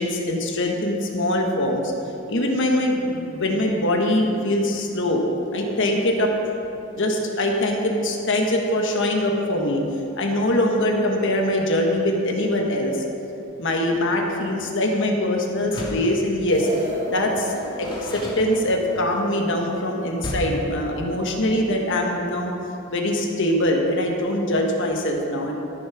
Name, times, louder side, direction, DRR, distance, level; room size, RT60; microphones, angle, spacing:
voice 1, 0.0-1.9 2.3-5.2 5.5-6.3 6.9-9.8 10.2-13.0 13.6-16.7 17.1-22.5 22.9-25.5, left 1 dB, 65° left, 1 dB, 1.4 m, -23 dB
Door, 15.6-16.2 17.3-19.0 20.2-20.7, equal, 25° left, 2.0 m, -33 dB
sound 1, 16.5-21.0, equal, 35° right, 2.1 m, -36 dB
13.5 x 6.4 x 6.1 m, 2.9 s
head